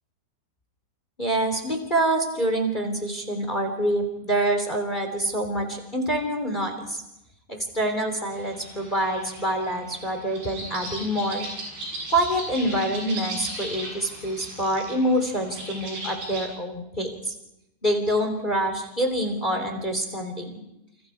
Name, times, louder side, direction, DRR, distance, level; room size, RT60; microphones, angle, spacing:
voice 1, 1.2-7.0 7.5-11.5 12.1-17.3 17.8-20.5, right 1 dB, 10° left, 5 dB, 2.8 m, -26 dB
sound 1, 8.3-16.4, right 2 dB, 65° right, 10.0 m, -37 dB
29.5 x 27.5 x 4.9 m, 0.87 s
omnidirectional pair, 5.1 m